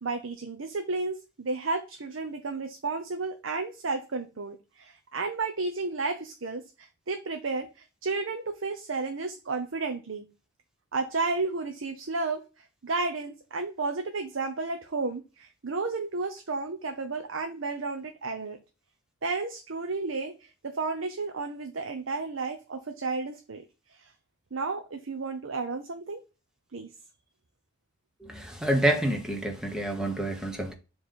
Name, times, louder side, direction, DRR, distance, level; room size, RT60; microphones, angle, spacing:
voice 1, 0.0-10.3 10.9-12.4 12.8-18.6 19.2-23.6 23.9-24.1 24.5-26.2 26.7-26.9, right 3 dB, 85° right, 0.8 m, -32 dB
voice 2, 28.2-30.7, right 1 dB, 5° right, 1.2 m, -28 dB
7.2 x 3.3 x 4.2 m
head